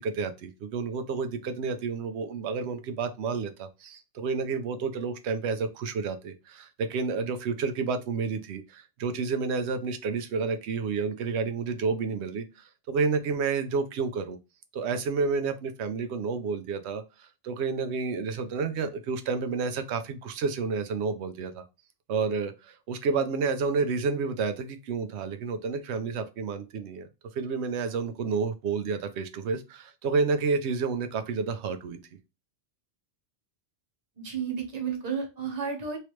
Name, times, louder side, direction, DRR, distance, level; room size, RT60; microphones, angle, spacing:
voice 1, 0.0-14.4 14.7-21.6 22.1-32.0, right 4 dB, 75° right, 0.9 m, -30 dB
voice 2, 34.2-36.0, right 6 dB, 35° right, 1.0 m, -32 dB
3.2 x 2.9 x 3.0 m
omnidirectional pair, 1.2 m